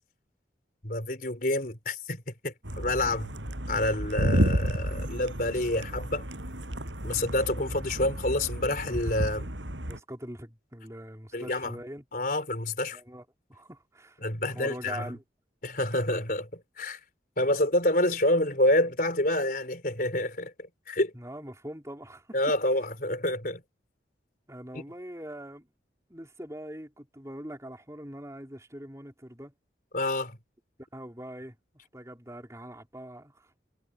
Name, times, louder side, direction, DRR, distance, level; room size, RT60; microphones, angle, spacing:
voice 1, 0.8-3.3 3.7-6.2 7.0-9.5 11.3-11.8 12.1-13.0 14.2-15.1 15.6-17.0 17.4-20.5 20.9-21.1 22.3-23.6 24.7-24.8 29.9-30.4, left 1 dB, 50° left, 4.6 m, -28 dB
sound 1, 2.6-10.0, equal, 90° right, 7.8 m, -31 dB
voice 2, 9.9-12.0 12.9-13.2 13.5-14.2 14.5-15.2 21.1-22.3 24.5-25.7 26.1-29.5 30.8-31.6 31.9-33.5, right 1 dB, 15° right, 4.2 m, -42 dB
head